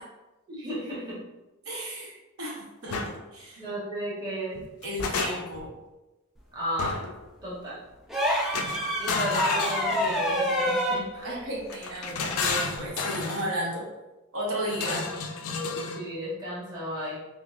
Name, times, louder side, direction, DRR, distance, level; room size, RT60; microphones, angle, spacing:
voice 1, 0.5-1.2 3.6-4.6 6.5-7.0 7.4-7.8 9.0-11.3 14.9-15.2 15.9-17.2, right 1 dB, 20° right, -8 dB, 1.0 m, -34 dB
voice 2, 1.6-3.0 3.3-3.6 4.8-5.7 11.2-13.9 14.3-15.1, right 1 dB, 75° right, -4 dB, 1.0 m, -33 dB
sound 1, 2.9-3.1 4.6-5.7 6.8-7.2 8.5-10.4 11.7-13.5 14.7-16.1, left 4 dB, 85° left, 0.4 m, -32 dB
sound 2, 8.1-11.1 12.7-12.9, equal, ahead, 0.4 m, -27 dB
5.9 x 2.0 x 2.4 m, 1.1 s
head